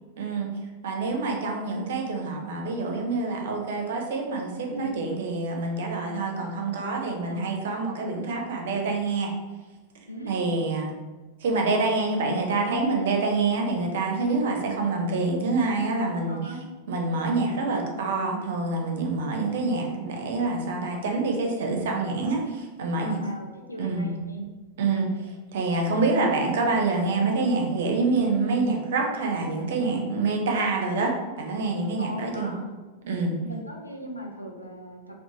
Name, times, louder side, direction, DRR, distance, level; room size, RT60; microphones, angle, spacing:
voice 1, 0.2-0.5 0.8-9.3 10.3-10.9 11.4-16.4 16.9-23.2 23.8-24.1 24.8-32.5 33.0-33.4, right 3 dB, 60° right, 1 dB, 0.5 m, -26 dB
voice 2, 4.7-5.0 7.0-7.5 10.1-10.5 12.1-12.9 13.3-13.8 16.3-16.7 21.6-22.2 22.9-24.5 32.0-32.7 33.4-35.2, right 1 dB, 85° left, 0 dB, 0.3 m, -39 dB
2.5 x 2.0 x 3.0 m, 1.2 s
figure-of-eight pair, 90°, 0 cm